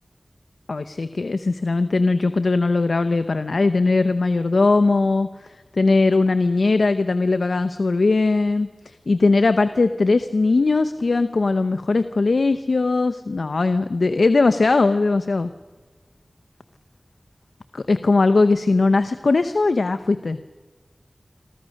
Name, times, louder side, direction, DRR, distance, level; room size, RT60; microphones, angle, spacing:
voice 1, 0.7-5.3 5.7-15.5 17.7-20.5, left 3 dB, 90° left, 11 dB, 0.9 m, -19 dB
27.5 x 24.0 x 6.5 m, 1.3 s
wide cardioid pair, 45°, 0 cm